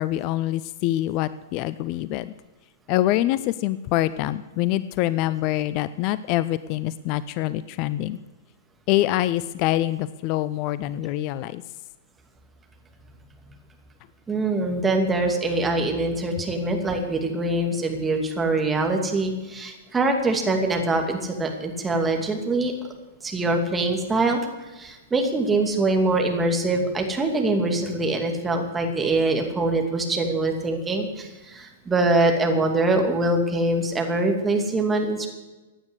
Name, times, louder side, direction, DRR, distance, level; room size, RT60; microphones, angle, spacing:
voice 1, 0.0-2.3 2.9-8.2 8.9-11.6, left 15 dB, 40° left, 17 dB, 0.5 m, -25 dB
voice 2, 14.3-22.7 23.2-35.3, right 2 dB, 10° right, 3 dB, 2.5 m, -24 dB
16.0 x 9.6 x 8.2 m, 1.2 s
figure-of-eight pair, 100°, 0 cm